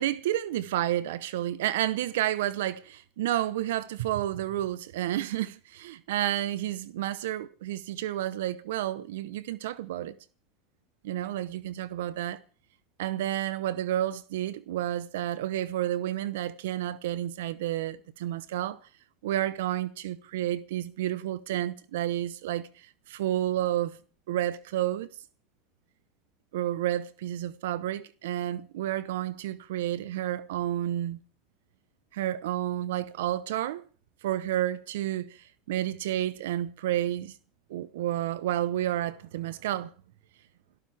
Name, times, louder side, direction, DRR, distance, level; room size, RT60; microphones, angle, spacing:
voice 1, 0.0-10.1 11.0-12.4 13.0-18.8 19.2-24.0 24.3-25.1 26.5-31.2 32.1-33.8 34.2-37.3 37.7-39.9, right 13 dB, 75° right, 0.9 m, -30 dB
29.0 x 13.0 x 3.5 m
hypercardioid pair, 95°, 0 cm